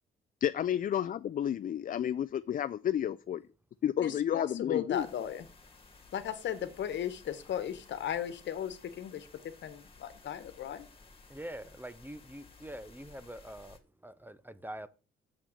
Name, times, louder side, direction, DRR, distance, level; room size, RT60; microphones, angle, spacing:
voice 1, 0.4-3.4 3.8-5.1, left 10 dB, 45° left, 0.4 m, -31 dB
voice 2, 4.0-5.4 6.1-10.9, left 9 dB, 65° left, 1.3 m, -36 dB
sound 1, 4.9-13.8, left 4 dB, 30° left, 2.3 m, -57 dB
voice 3, 11.3-13.8 14.0-14.9, right 1 dB, 10° right, 0.7 m, -44 dB
7.2 x 6.0 x 6.7 m
cardioid pair, 90°, 20 cm